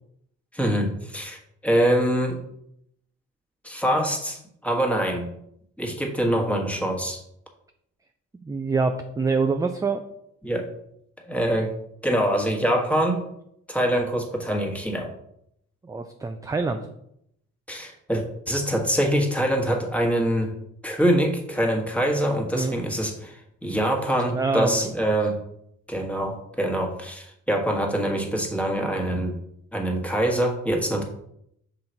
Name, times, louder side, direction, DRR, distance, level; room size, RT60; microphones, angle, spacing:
voice 1, 0.5-2.4 3.6-5.3 5.8-7.2 10.4-10.7 11.2-11.7 12.0-13.2 13.7-15.1 17.7-20.5 20.8-25.4 25.9-29.4 29.7-31.0, right 1 dB, 5° left, 1 dB, 1.4 m, -24 dB
voice 2, 8.5-10.0 15.8-16.8 22.5-22.8 24.3-25.1 30.9-31.0, right 4 dB, 10° right, 6 dB, 0.4 m, -25 dB
5.6 x 3.9 x 4.5 m, 0.75 s
cardioid pair, 90°, 30 cm